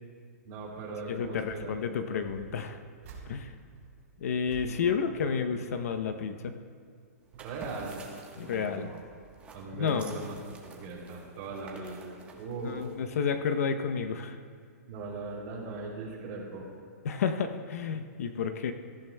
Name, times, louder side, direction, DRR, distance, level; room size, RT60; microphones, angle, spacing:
voice 1, 0.4-1.7 2.1-2.5 4.7-5.4 7.3-8.0 8.4-9.0 9.5-10.4 10.6-12.8 14.9-16.7, right 3 dB, 35° right, -3 dB, 2.9 m, -40 dB
voice 2, 1.1-2.8 3.3-3.5 4.2-6.5 8.4-8.9 9.7-10.1 12.6-14.4 17.0-18.7, left 6 dB, 60° left, 8 dB, 0.7 m, -31 dB
sound 1, 1.3-1.8 2.2-5.9 6.2-6.6 7.1-8.3 8.8-9.8 10.5-10.6 10.9-11.0, right 4 dB, 50° right, 3.3 m, -53 dB
sound 2, 7.2-13.3, right 4 dB, 15° right, 1.1 m, -51 dB
18.5 x 14.0 x 2.2 m, 2.2 s
hypercardioid pair, 155°, 9 cm